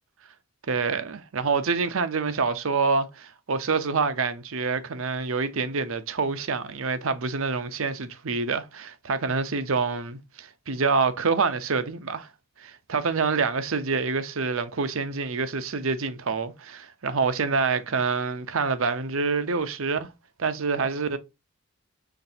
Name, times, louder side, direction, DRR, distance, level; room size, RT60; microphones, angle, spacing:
voice 1, 0.7-12.3 12.6-20.1 20.4-21.2, right 4 dB, 65° right, 0.7 m, -26 dB
5.9 x 3.3 x 2.7 m
head